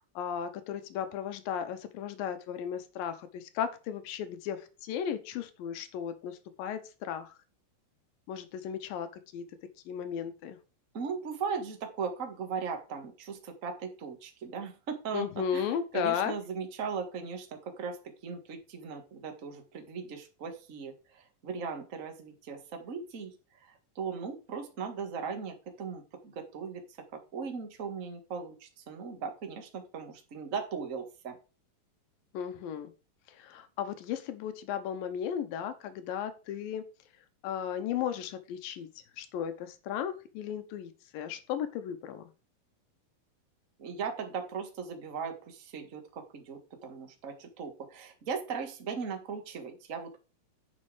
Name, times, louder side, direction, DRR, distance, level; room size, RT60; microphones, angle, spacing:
voice 1, 0.2-7.3 8.3-9.4 9.9-10.6 15.1-16.3 32.3-32.9 33.3-36.8 37.4-38.9 39.2-42.3, left 8 dB, 90° left, 9 dB, 2.8 m, -35 dB
voice 2, 10.9-15.3 15.5-15.7 15.9-23.3 23.6-23.7 23.9-26.8 27.3-31.4 43.8-50.2, right 5 dB, 35° right, 4 dB, 1.3 m, -38 dB
10.0 x 5.5 x 4.9 m, 0.32 s
omnidirectional pair, 3.9 m